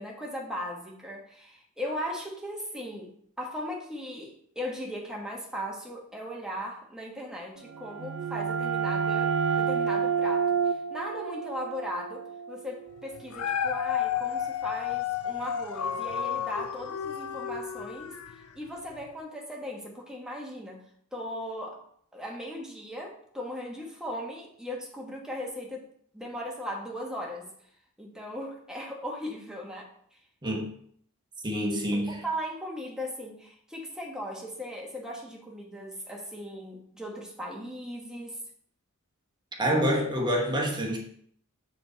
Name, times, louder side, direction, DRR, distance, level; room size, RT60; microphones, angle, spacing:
voice 1, 0.0-18.1 18.5-20.8 21.1-21.8 22.1-25.9 26.1-27.5 28.0-30.2 31.9-38.4, equal, 5° right, 1.3 m, -38 dB
sound 1, 7.7-13.2, right 6 dB, 60° right, 0.4 m, -29 dB
Dog, 13.1-18.5 19.0-19.1, left 8 dB, 75° left, 0.5 m, -32 dB
voice 2, 31.4-32.2 39.6-41.0, equal, 20° right, 1.1 m, -27 dB
6.7 x 4.5 x 4.0 m
head